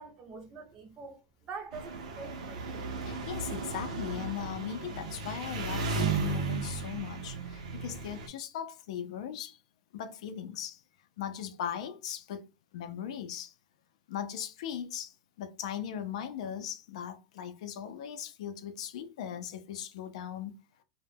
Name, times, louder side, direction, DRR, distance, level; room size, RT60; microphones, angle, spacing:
voice 1, 0.0-2.9, right 4 dB, 25° right, 0.5 m, -45 dB
Engine, 1.7-8.3, right 4 dB, 90° right, 0.6 m, -35 dB
voice 2, 3.0-9.6 9.9-10.8 11.2-13.5 14.1-20.5, left 9 dB, 70° left, 0.4 m, -39 dB
2.1 x 2.1 x 3.2 m
supercardioid pair, 160°, 4 cm